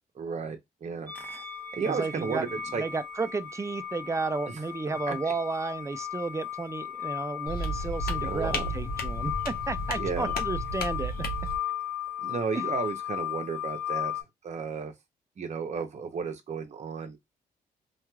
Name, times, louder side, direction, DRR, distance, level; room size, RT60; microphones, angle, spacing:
voice 1, 0.1-1.1 1.7-2.8 4.5-4.6 5.1-5.2 8.2-8.7 10.0-10.3 12.2-14.9 15.4-17.2, right 5 dB, 45° right, 0.7 m, -33 dB
sound 1, 1.1-14.2, left 10 dB, 10° left, 1.0 m, -36 dB
voice 2, 1.9-2.5 2.8-11.3 12.6-12.7, right 4 dB, 20° right, 0.4 m, -33 dB
sound 2, 7.5-11.6, equal, 60° left, 0.9 m, -33 dB
3.0 x 2.4 x 2.2 m
cardioid pair, 70°, 16 cm